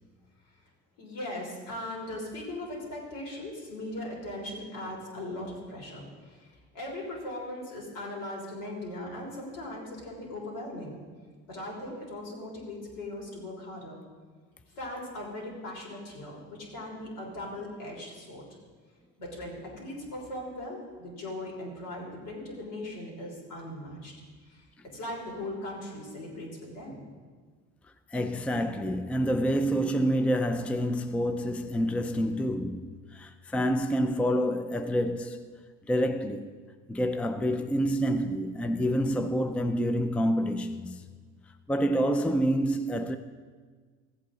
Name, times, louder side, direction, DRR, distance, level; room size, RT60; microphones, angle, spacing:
voice 1, 1.0-11.0 11.5-14.0 14.7-18.5 19.2-24.1 24.5-24.7 24.9-27.0, left 1 dB, 80° left, 3.5 m, -39 dB
voice 2, 28.1-35.5 35.9-36.5 36.9-41.0 41.7-43.2, equal, 5° left, 0.4 m, -27 dB
15.0 x 8.3 x 3.8 m
cardioid pair, 110°, 31 cm